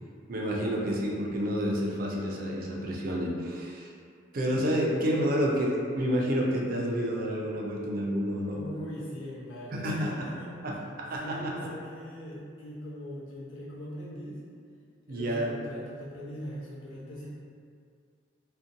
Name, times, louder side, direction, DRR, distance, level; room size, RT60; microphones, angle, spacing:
voice 1, 0.3-3.9 4.3-8.6 9.7-10.1 10.6-11.5 15.1-15.5, equal, 45° right, -2 dB, 0.4 m, -29 dB
voice 2, 8.5-10.5 11.2-14.4 15.1-17.3, equal, 85° left, -7 dB, 0.7 m, -41 dB
2.5 x 2.1 x 2.6 m, 2.2 s
head